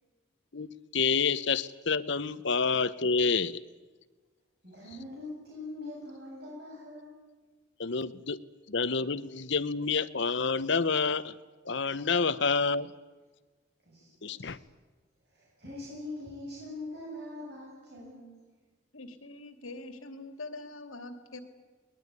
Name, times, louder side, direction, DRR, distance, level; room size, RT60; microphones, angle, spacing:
voice 1, 0.5-3.6 7.8-8.4 8.7-11.3 11.7-12.9 14.2-14.6, left 5 dB, 60° left, 13 dB, 0.9 m, -28 dB
voice 2, 4.6-7.2 13.9-14.7 15.3-18.4, left 2 dB, 50° right, -4 dB, 7.5 m, -43 dB
voice 3, 18.9-21.4, left 2 dB, 85° left, 9 dB, 2.6 m, -43 dB
22.0 x 20.0 x 9.6 m, 1.3 s
head